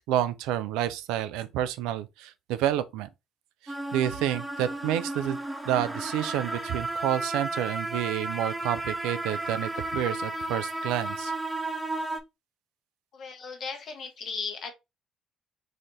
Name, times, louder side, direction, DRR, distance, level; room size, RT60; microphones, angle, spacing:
voice 1, 0.0-3.1 3.6-5.4 5.6-11.3, right 11 dB, 75° right, 0.4 m, -29 dB
sound 1, 3.7-12.2, right 2 dB, 15° right, 0.8 m, -33 dB
voice 2, 13.1-14.7, left 5 dB, 55° left, 1.0 m, -36 dB
4.1 x 2.5 x 3.1 m
hypercardioid pair, 55°, 0 cm